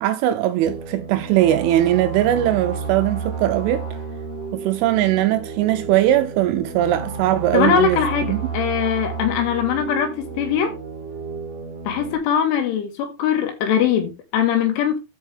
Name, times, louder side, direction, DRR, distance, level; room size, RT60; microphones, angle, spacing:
voice 1, 0.0-3.9 4.5-8.0 8.3-8.4, right 13 dB, 80° right, 2.9 m, -20 dB
sound 1, 0.6-12.2, right 4 dB, 20° right, 2.0 m, -31 dB
voice 2, 7.5-10.8 11.9-15.0, left 8 dB, 75° left, 3.8 m, -21 dB
13.5 x 4.9 x 3.4 m
omnidirectional pair, 6.0 m